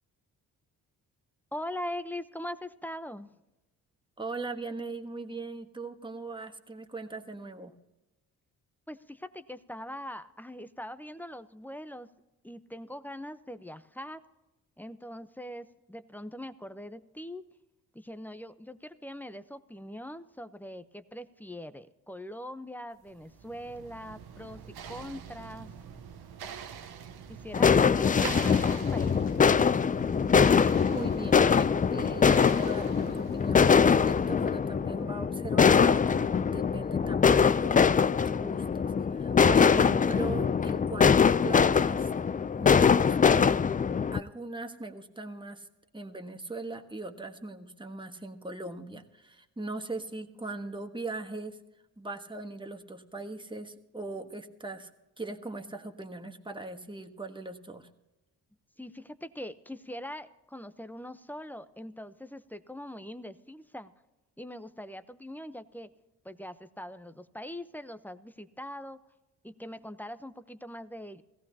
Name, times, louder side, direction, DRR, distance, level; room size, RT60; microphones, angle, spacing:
voice 1, 1.5-3.3 8.9-12.1 12.4-14.2 14.8-17.4 17.9-25.7 27.3-29.5 58.8-63.9 64.4-65.9 66.2-69.0 69.4-71.2, left 1 dB, 5° left, 12 dB, 0.8 m, -42 dB
voice 2, 4.2-7.7 30.9-42.1 42.6-43.6 44.1-45.7 45.9-51.6 52.0-54.9 55.2-57.9, right 2 dB, 10° right, 5 dB, 1.4 m, -40 dB
sound 1, 23.1-34.6, right 7 dB, 70° right, 1.0 m, -44 dB
sound 2, 27.5-44.2, left 6 dB, 20° left, 0.4 m, -23 dB
17.5 x 15.0 x 2.8 m, 0.99 s
supercardioid pair, 50°, 40 cm